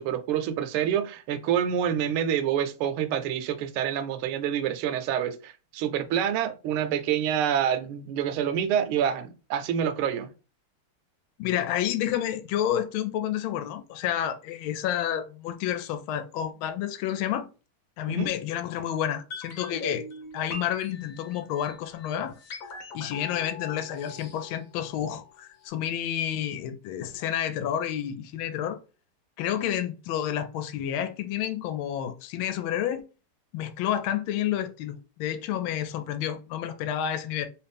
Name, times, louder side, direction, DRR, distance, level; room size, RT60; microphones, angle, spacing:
voice 1, 0.0-10.3 18.1-18.3, right 9 dB, 80° right, 1.4 m, -27 dB
voice 2, 11.4-17.5 18.0-20.1 20.3-22.3 22.9-28.8 29.4-33.0 33.5-37.5, left 10 dB, 75° left, 1.3 m, -30 dB
sound 1, 19.3-25.3 25.6-25.7, left 3 dB, 55° left, 1.0 m, -41 dB
3.2 x 3.0 x 3.4 m
omnidirectional pair, 2.4 m